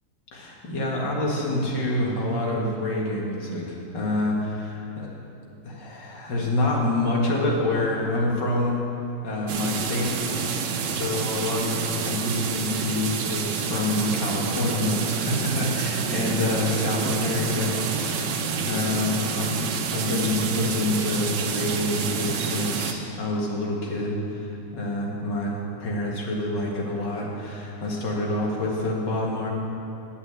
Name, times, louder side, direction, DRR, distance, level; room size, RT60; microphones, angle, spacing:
voice 1, 0.3-5.1 5.6-8.8 9.2-10.1 10.9-18.3 18.6-19.6 19.9-29.5, left 1 dB, 80° left, -2 dB, 2.5 m, -27 dB
sound 1, 9.5-22.9, right 5 dB, 90° right, 1.5 m, -28 dB
10.5 x 7.0 x 8.1 m, 3.0 s
omnidirectional pair, 1.9 m